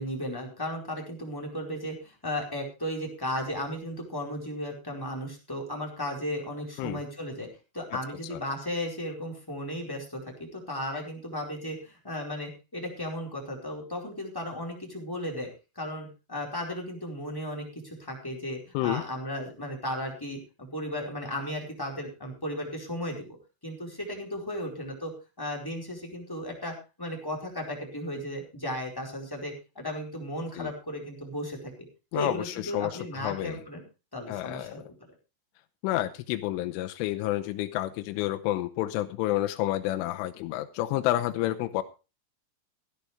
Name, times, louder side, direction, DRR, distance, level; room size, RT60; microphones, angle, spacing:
voice 1, 0.0-7.5 7.7-15.5 15.8-23.4 23.6-25.1 25.4-31.6 32.1-33.8 34.1-34.8, left 1 dB, 5° left, 0 dB, 3.9 m, -35 dB
voice 2, 32.1-33.6 34.3-34.8 35.8-41.8, left 15 dB, 85° left, 8 dB, 3.3 m, -29 dB
16.5 x 12.0 x 3.4 m, 0.31 s
omnidirectional pair, 5.5 m